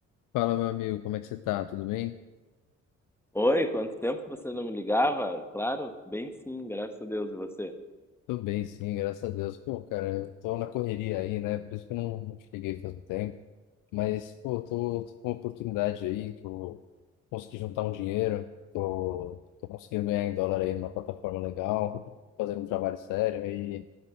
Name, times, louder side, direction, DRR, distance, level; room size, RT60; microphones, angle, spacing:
voice 1, 0.3-2.1 8.3-13.3 13.9-16.8 17.3-18.5 18.7-19.4 19.7-23.8, left 15 dB, 60° left, 12 dB, 0.5 m, -32 dB
voice 2, 3.3-7.7, left 1 dB, 5° left, 8 dB, 1.2 m, -30 dB
10.5 x 9.0 x 6.2 m, 1.2 s
hypercardioid pair, 45°, 37 cm